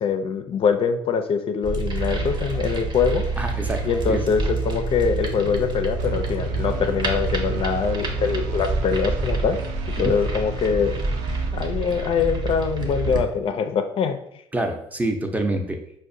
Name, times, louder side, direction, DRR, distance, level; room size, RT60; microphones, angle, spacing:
voice 1, 0.0-3.3 3.9-9.6 10.0-10.9 11.5-14.2, left 6 dB, 45° left, 7 dB, 0.4 m, -23 dB
sound 1, 1.6-13.2, right 3 dB, 40° right, 0.7 m, -27 dB
voice 2, 3.4-4.5 10.0-10.1 14.5-15.8, right 2 dB, 10° right, 4 dB, 0.5 m, -27 dB
sound 2, 6.0-12.5, right 2 dB, 85° right, 0.4 m, -38 dB
4.6 x 2.1 x 2.6 m, 0.73 s
cardioid pair, 100°, 12 cm